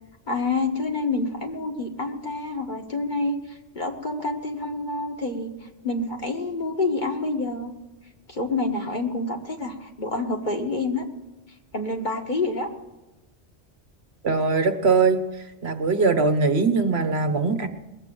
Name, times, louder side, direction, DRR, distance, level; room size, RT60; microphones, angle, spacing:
voice 1, 0.3-5.5 5.8-7.7 8.3-11.0 11.7-12.7, left 3 dB, 45° left, 2 dB, 1.7 m, -27 dB
voice 2, 14.2-15.2 15.6-17.7, right 4 dB, 65° right, 7 dB, 1.4 m, -21 dB
21.0 x 7.9 x 7.6 m, 1.0 s
omnidirectional pair, 1.1 m